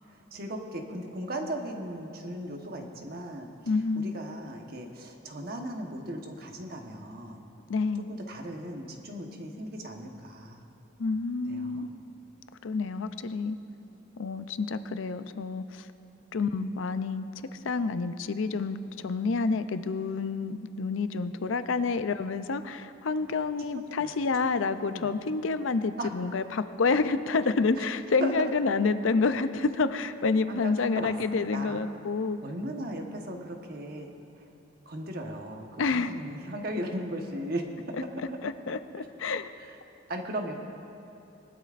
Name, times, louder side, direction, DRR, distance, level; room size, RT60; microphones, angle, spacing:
voice 1, 0.1-3.5 3.9-7.4 8.1-10.7 11.5-11.9 14.6-14.8 23.7-24.1 24.8-25.1 26.0-26.1 27.8-27.9 28.2-28.4 30.5-31.9 32.4-34.1 34.4-34.5 34.9-37.6 38.0-38.4 39.0-39.8 40.1-40.6, right 1 dB, 50° right, 2 dB, 1.1 m, -37 dB
voice 2, 3.7-4.1 7.7-8.1 11.0-11.9 12.6-13.6 14.2-15.9 16.3-17.3 17.6-18.8 19.0-32.4 35.8-36.2 38.4-39.5, left 4 dB, 75° left, 11 dB, 0.5 m, -28 dB
21.0 x 12.0 x 2.5 m, 2.8 s
head